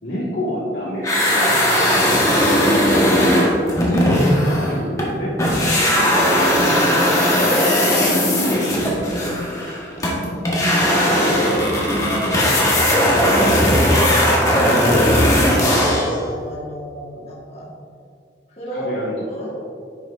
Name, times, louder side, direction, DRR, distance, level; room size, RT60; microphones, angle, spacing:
voice 1, 0.0-1.6 2.0-2.3 3.8-7.1 7.9-9.9 13.5-15.7 18.7-19.5, equal, 75° left, -10 dB, 1.6 m, -28 dB
sound 1, 1.0-5.1 5.4-16.2, equal, 20° left, 1.1 m, -17 dB
voice 2, 1.4-2.4 6.2-6.5 10.2-13.7 15.4-17.7 18.5-19.0 19.3-19.6, equal, 35° left, -5 dB, 1.4 m, -32 dB
9.7 x 5.8 x 2.5 m, 2.2 s
head